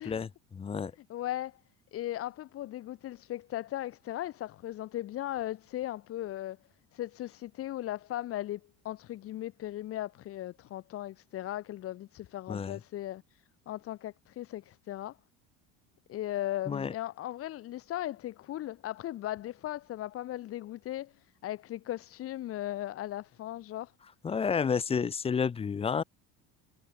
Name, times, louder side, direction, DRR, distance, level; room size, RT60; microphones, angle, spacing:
voice 1, 0.0-0.9 12.5-12.8 16.7-16.9 24.2-26.0, left 6 dB, 20° left, 1.0 m, -30 dB
voice 2, 1.1-1.6 1.9-6.6 6.9-15.2 16.1-23.9, left 14 dB, 45° left, 2.6 m, -37 dB
cardioid pair, 150°, 32 cm